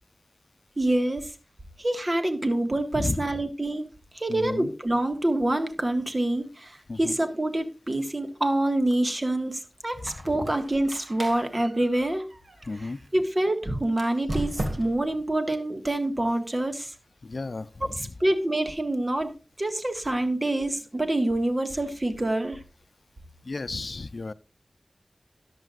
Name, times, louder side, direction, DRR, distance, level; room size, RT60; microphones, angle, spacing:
voice 1, 0.8-1.3 1.8-3.9 4.1-12.3 12.8-16.9 17.8-22.6, right 1 dB, 40° right, 6 dB, 1.8 m, -26 dB
voice 2, 4.3-4.7 6.9-7.2 10.0-10.5 12.7-13.0 17.2-18.1 23.4-24.3, left 3 dB, 80° left, 15 dB, 0.5 m, -33 dB
Squeak, 9.9-13.1 13.9-15.2, right 1 dB, 85° right, 2.1 m, -36 dB
14.0 x 11.0 x 2.5 m, 0.31 s
wide cardioid pair, 65°, 0 cm